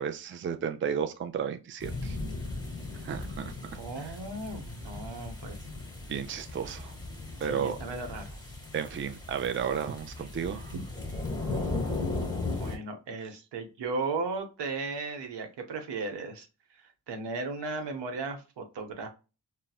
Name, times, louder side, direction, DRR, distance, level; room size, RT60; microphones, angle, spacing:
voice 1, 0.0-2.2 2.9-4.1 6.1-6.9 7.4-7.8 8.7-10.7, right 7 dB, 30° right, 0.4 m, -33 dB
sound 1, 1.8-12.8, left 3 dB, 10° left, 1.1 m, -37 dB
voice 2, 3.8-5.6 7.5-8.4 10.7-10.8 12.5-16.5 16.8-19.1, right 3 dB, 80° right, 0.7 m, -36 dB
4.0 x 2.0 x 2.3 m
cardioid pair, 45°, 41 cm